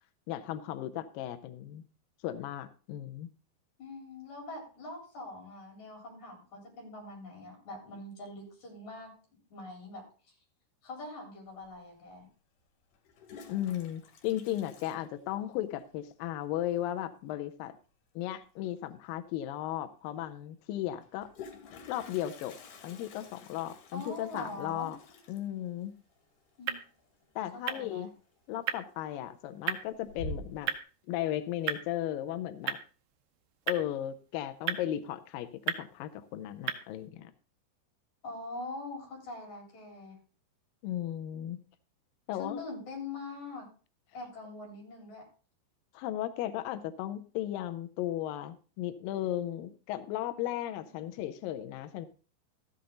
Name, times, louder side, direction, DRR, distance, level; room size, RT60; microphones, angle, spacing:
voice 1, 0.3-1.8 2.2-3.3 13.5-17.7 18.2-21.3 21.9-22.6 22.8-25.0 25.3-25.9 27.4-28.1 28.5-30.7 31.1-32.8 33.7-37.3 40.8-41.6 42.3-42.6 45.9-52.1, left 12 dB, 90° left, 10 dB, 2.0 m, -35 dB
voice 2, 3.8-9.1 9.5-10.0 10.8-12.3 23.9-24.9 26.6-26.8 27.7-28.1 38.2-40.2 42.3-43.7 44.1-45.2 50.6-51.0, left 2 dB, 45° left, 0 dB, 5.0 m, -43 dB
Toilet flush, 11.6-11.7 12.9-16.0 16.4-16.5 16.8-17.2 18.9-19.0 19.3-19.4 21.0-27.7 28.0-28.4 28.8-29.4 29.8-30.8, left 2 dB, 70° left, 3.6 m, -48 dB
sound 1, 25.8-37.1, right 10 dB, 70° right, 2.4 m, -40 dB
13.5 x 8.2 x 3.8 m, 0.37 s
omnidirectional pair, 5.0 m